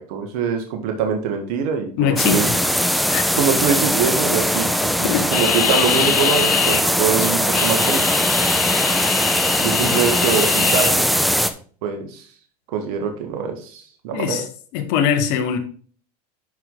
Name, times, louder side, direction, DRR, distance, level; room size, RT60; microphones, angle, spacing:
voice 1, 0.1-2.5 3.4-8.2 9.6-11.1 11.8-12.2 12.7-14.4, right 6 dB, 70° right, 1.8 m, -24 dB
voice 2, 2.0-2.6 3.1-3.3 5.0-5.3 9.8-10.0 14.1-14.4 14.7-15.6, left 8 dB, 65° left, 1.7 m, -21 dB
sound 1, 2.2-11.5, equal, ahead, 0.9 m, -20 dB
sound 2, 5.3-6.8 7.2-10.9, left 8 dB, 85° left, 1.3 m, -23 dB
11.5 x 4.8 x 3.8 m
hypercardioid pair, 100°, 19 cm